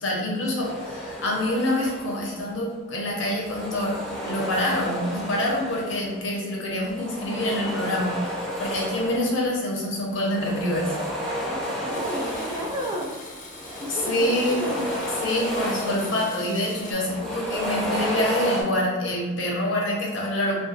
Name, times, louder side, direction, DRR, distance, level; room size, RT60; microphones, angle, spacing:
voice 1, 0.0-10.9 13.9-14.8 15.1-20.6, left 1 dB, 75° left, -2 dB, 0.7 m, -26 dB
metal shop hoist chains thick rattle pull on track fast, 0.6-2.5 3.2-6.2 6.8-9.6 10.0-13.1 13.4-16.4 16.8-18.6, equal, 5° left, 0.7 m, -32 dB
voice 2, 11.3-13.1 13.8-14.8, equal, 20° right, -2 dB, 0.3 m, -33 dB
Domestic sounds home sounds, 11.9-16.9, left 2 dB, 40° left, 0.4 m, -41 dB
2.3 x 2.2 x 2.6 m, 1.3 s
head